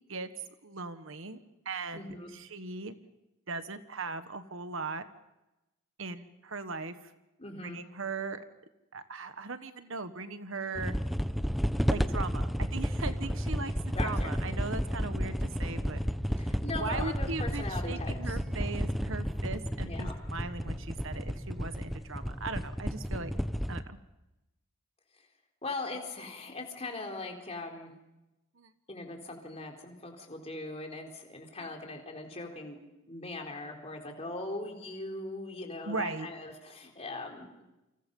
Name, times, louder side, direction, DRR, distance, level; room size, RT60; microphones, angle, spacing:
voice 1, 0.6-1.4 1.6-2.1 2.3-2.9 3.5-5.0 6.0-7.1 7.6-8.4 8.9-10.9 11.9-16.0 16.3-23.3 23.7-24.0 28.6-28.7 31.6-31.7 35.9-36.3, right 3 dB, 60° right, 10 dB, 1.4 m, -39 dB
voice 2, 1.9-2.3 7.4-7.8 13.9-14.4 16.4-18.4 19.8-20.2 25.1-25.3 25.6-27.9 28.9-32.8 33.1-37.6, left 2 dB, 30° left, 2 dB, 4.0 m, -40 dB
sound 1, 10.8-23.8, equal, ahead, 0.8 m, -32 dB
29.5 x 26.0 x 5.5 m, 0.95 s
head